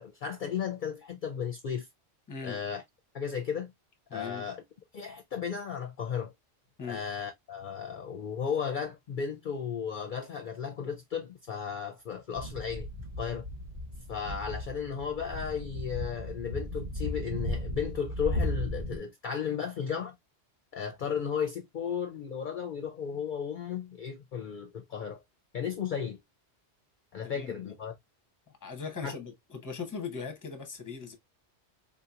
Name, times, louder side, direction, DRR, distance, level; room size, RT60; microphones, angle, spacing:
voice 1, 0.0-1.9 2.4-2.8 3.1-3.7 4.1-4.6 4.9-6.3 6.9-12.9 13.2-13.5 14.1-20.2 20.7-25.2 25.5-26.2 27.1-27.9 29.0-29.1, left 7 dB, 55° left, 0.6 m, -34 dB
voice 2, 2.3-2.6 4.1-4.5 6.8-7.0 27.2-27.7 28.6-31.2, left 5 dB, 20° left, 0.7 m, -39 dB
sound 1, 12.3-19.0, left 1 dB, 45° right, 1.1 m, -36 dB
3.7 x 2.8 x 2.3 m
omnidirectional pair, 1.2 m